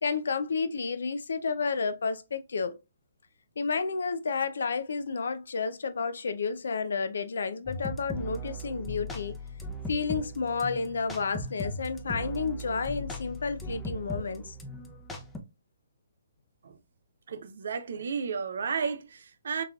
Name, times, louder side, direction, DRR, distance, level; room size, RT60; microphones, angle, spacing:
voice 1, 0.0-2.8 3.6-9.4 9.9-14.6, left 5 dB, 70° left, 0.5 m, -31 dB
sound 1, 7.7-15.4, equal, 10° left, 0.6 m, -38 dB
voice 2, 17.3-19.6, right 6 dB, 65° right, 0.6 m, -33 dB
3.8 x 3.1 x 2.3 m
figure-of-eight pair, 135°, 0 cm